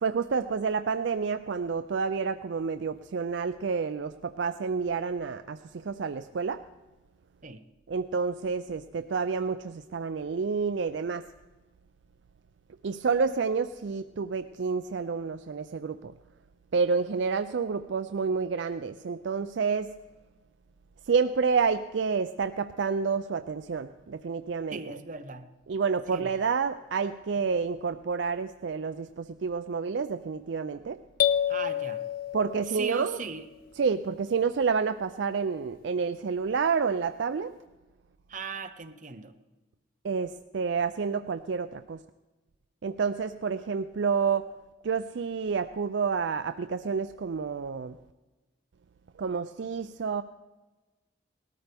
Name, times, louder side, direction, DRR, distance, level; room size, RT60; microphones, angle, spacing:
voice 1, 0.0-6.6 7.9-11.2 12.8-16.1 16.7-19.9 21.1-25.0 25.7-31.0 32.3-33.2 33.8-37.5 40.0-42.0 42.8-44.4 44.8-48.0 49.2-50.2, right 5 dB, 60° right, 10 dB, 0.4 m, -29 dB
voice 2, 24.7-25.5 26.1-26.3 31.5-32.0 32.7-33.4 38.3-39.3, right 4 dB, 40° right, 6 dB, 0.8 m, -38 dB
sound 1, 31.2-33.1, left 10 dB, 45° left, 0.4 m, -28 dB
18.5 x 13.5 x 3.5 m, 1.1 s
head